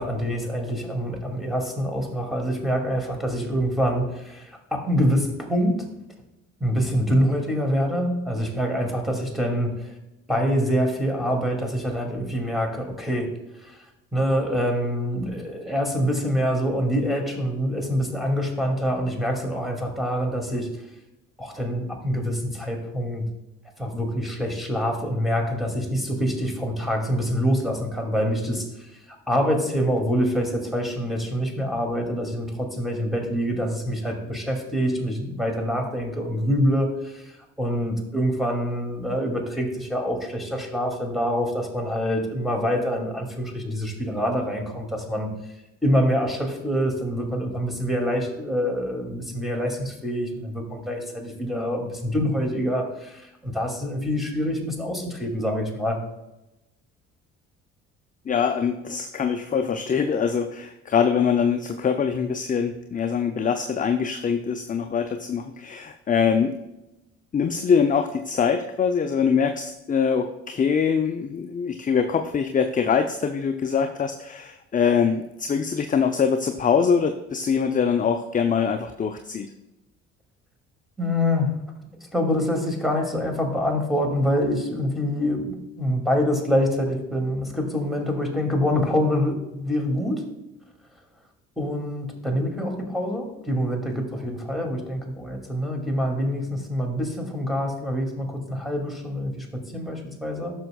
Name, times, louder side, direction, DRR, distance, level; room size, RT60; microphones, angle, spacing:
voice 1, 0.0-5.9 6.6-9.9 10.3-13.3 13.6-20.7 21.4-23.3 23.8-29.0 29.3-45.3 45.8-56.0 81.0-81.6 82.1-90.2 91.6-100.5, equal, ahead, 0 dB, 2.4 m, -25 dB
voice 2, 58.3-66.5 67.3-79.5, left 6 dB, 20° left, 7 dB, 0.5 m, -23 dB
12.0 x 6.3 x 2.3 m, 0.93 s
hypercardioid pair, 55°, 36 cm